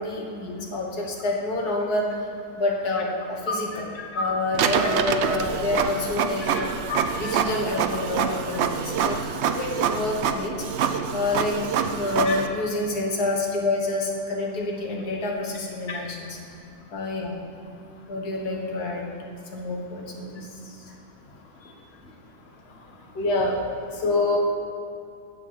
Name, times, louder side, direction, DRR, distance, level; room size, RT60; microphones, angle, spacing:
voice 1, 0.0-2.1 2.6-3.8 4.1-6.7 7.2-10.6 11.1-11.5 11.9-16.4 16.9-17.3 18.1-19.1 19.5-20.8, left 2 dB, 85° left, -1 dB, 1.9 m, -28 dB
Printer, 4.5-12.5, right 7 dB, 65° right, 0.7 m, -26 dB
voice 2, 6.9-7.3 12.2-12.3 15.9-16.0 23.2-23.5 24.0-24.4, left 3 dB, 45° left, 0 dB, 1.4 m, -24 dB
7.9 x 7.2 x 7.7 m, 2.6 s
omnidirectional pair, 1.6 m